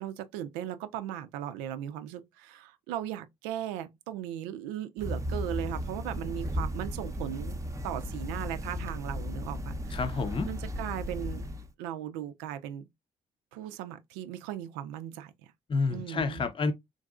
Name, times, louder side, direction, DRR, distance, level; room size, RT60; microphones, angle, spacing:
voice 1, 0.0-7.6 7.8-10.0 10.4-11.4 11.8-12.9 13.5-15.5 15.9-16.5, right 11 dB, 75° right, 0.5 m, -37 dB
sound 1, 5.0-11.7, equal, 20° right, 0.7 m, -35 dB
voice 2, 9.9-10.5 15.7-16.7, left 4 dB, 30° left, 0.7 m, -29 dB
3.8 x 2.5 x 2.3 m
hypercardioid pair, 45°, 17 cm